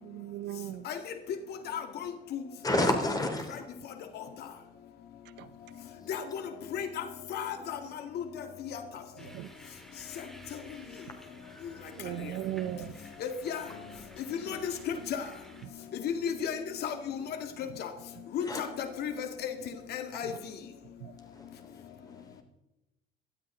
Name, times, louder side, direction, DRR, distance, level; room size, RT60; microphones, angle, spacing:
voice 1, 0.0-0.9 5.2-5.5 9.2-9.5 12.0-13.0 15.6-15.7 17.7-17.8 20.2-20.3 21.0-21.1, right 13 dB, 85° right, 12 dB, 0.7 m, -38 dB
voice 2, 1.7-2.4 6.1-6.4 6.7-7.0 7.3-7.8 8.1-8.2 8.7-8.8 13.5-13.6 14.3-15.2 16.0-17.2 17.8-17.9 18.3-19.5 19.9-20.3, left 8 dB, 70° left, 7 dB, 2.0 m, -34 dB
voice 3, 2.6-3.6 11.4-11.9 18.4-18.6 21.2-22.4, left 1 dB, 20° left, 4 dB, 3.1 m, -32 dB
sound 1, 9.2-15.7, equal, ahead, 2.1 m, -54 dB
19.0 x 12.5 x 3.8 m, 0.98 s
cardioid pair, 110°, 17 cm